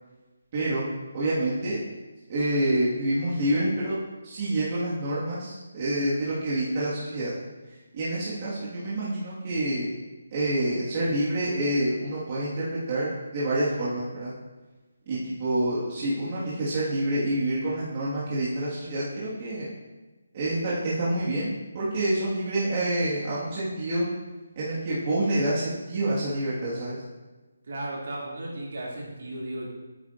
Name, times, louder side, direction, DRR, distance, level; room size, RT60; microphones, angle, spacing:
voice 1, 0.5-0.9 1.1-1.8 2.3-4.0 4.2-7.3 7.9-9.9 10.3-14.3 15.1-19.7 20.3-24.1 24.6-27.0, right 1 dB, 30° right, -9 dB, 1.8 m, -27 dB
voice 2, 27.7-29.7, right 1 dB, 55° right, -4 dB, 2.6 m, -35 dB
9.1 x 9.0 x 2.6 m, 1.2 s
hypercardioid pair, 170°, 0 cm